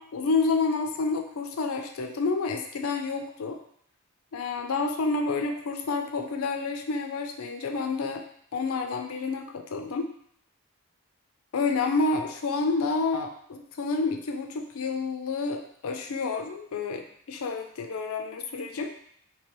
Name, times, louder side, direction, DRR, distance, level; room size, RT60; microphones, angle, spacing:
voice 1, 0.0-3.6 4.3-8.2 8.5-10.1 11.5-18.9, left 4 dB, 75° left, 5 dB, 0.4 m, -29 dB
3.1 x 2.9 x 3.0 m, 0.66 s
head